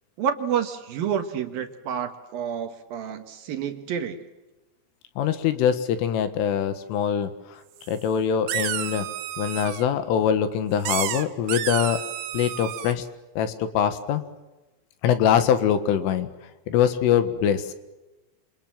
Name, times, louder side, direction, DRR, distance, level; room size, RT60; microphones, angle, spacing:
voice 1, 0.2-4.2, right 8 dB, 65° right, 7 dB, 2.5 m, -29 dB
voice 2, 5.2-7.6 7.9-9.1 9.4-12.0 12.3-13.1 13.4-14.2 15.0-16.3 16.7-17.7, left 8 dB, 75° left, 11 dB, 4.0 m, -23 dB
sound 1, 7.8-7.9 8.5-9.9 10.9-12.9, right 13 dB, 85° right, 4.0 m, -30 dB
28.0 x 28.0 x 7.5 m, 1.1 s
omnidirectional pair, 6.0 m